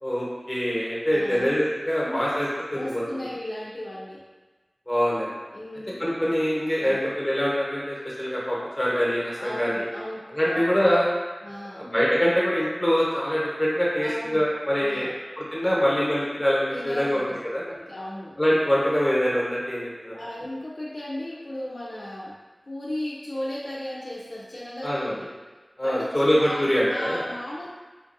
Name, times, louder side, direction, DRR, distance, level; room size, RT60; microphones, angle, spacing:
voice 1, 0.0-2.5 2.7-3.0 4.9-5.3 6.0-9.9 10.3-11.1 11.7-15.1 15.5-17.2 17.5-17.6 18.4-20.1 24.8-25.1 25.8-27.2, equal, 20° left, -6 dB, 1.1 m, -24 dB
voice 2, 1.1-1.5 2.0-4.2 5.5-6.0 6.8-7.1 9.4-10.7 11.4-11.9 14.0-15.1 16.7-17.4 17.6-18.4 20.1-22.4 22.7-25.3 25.8-27.7, left 1 dB, 75° left, -6 dB, 0.6 m, -36 dB
4.2 x 2.6 x 2.6 m, 1.3 s
wide cardioid pair, 45°, 0 cm